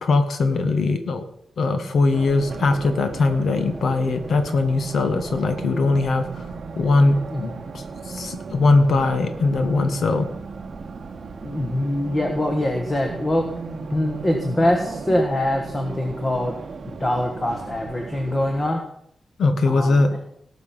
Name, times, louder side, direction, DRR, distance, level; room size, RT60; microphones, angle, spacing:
voice 1, 0.0-1.2 1.6-6.4 6.8-10.3 19.4-20.2, left 3 dB, 65° left, 8 dB, 1.4 m, -20 dB
Race car auto racing, 2.1-18.7, right 4 dB, 50° right, 0.9 m, -36 dB
voice 2, 11.4-13.4 13.9-16.6 16.8-18.8 19.7-20.2, left 1 dB, 20° left, 3 dB, 1.4 m, -23 dB
18.0 x 6.0 x 5.7 m, 0.73 s
wide cardioid pair, 160°, 0 cm